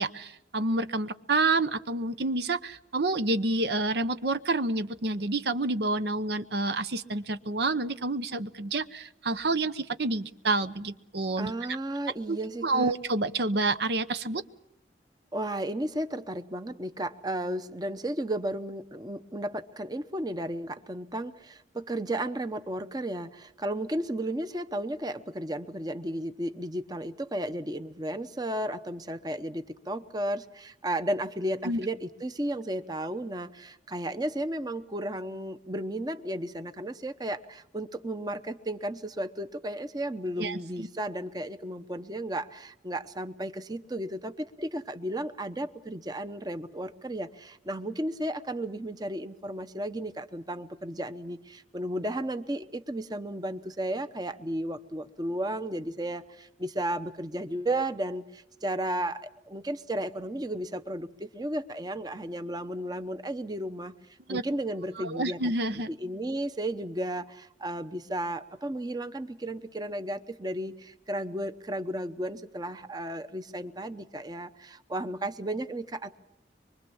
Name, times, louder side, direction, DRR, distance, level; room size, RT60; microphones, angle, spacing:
voice 1, 0.0-11.5 12.3-12.4 12.6-14.4 31.6-31.8 40.4-40.9 64.3-64.4 65.0-65.9, right 2 dB, 65° right, 11 dB, 0.9 m, -28 dB
voice 2, 11.4-12.9 15.3-63.9 64.3-65.4 65.9-76.2, right 1 dB, 20° right, 10 dB, 0.9 m, -34 dB
24.0 x 24.0 x 7.1 m, 0.84 s
head